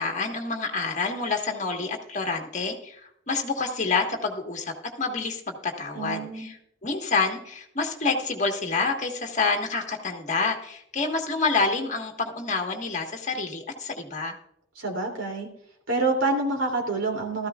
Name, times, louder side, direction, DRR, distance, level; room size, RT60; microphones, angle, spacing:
voice 1, 0.0-3.0 3.3-4.7 5.0-6.6 6.8-14.4, left 4 dB, 40° left, 3 dB, 1.5 m, -28 dB
voice 2, 5.9-6.5 14.8-15.5 15.9-17.5, right 3 dB, 80° right, 1 dB, 2.9 m, -27 dB
15.5 x 13.5 x 2.4 m, 0.73 s
head